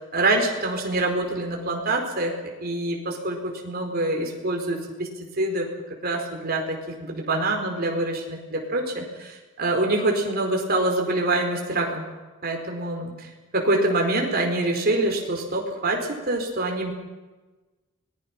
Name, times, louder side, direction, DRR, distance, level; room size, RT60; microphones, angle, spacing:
voice 1, 0.1-2.3 2.6-5.1 5.3-5.7 6.0-12.1 12.4-13.3 13.5-16.9, right 2 dB, 45° right, 1 dB, 4.6 m, -25 dB
25.5 x 20.0 x 6.1 m, 1.2 s
head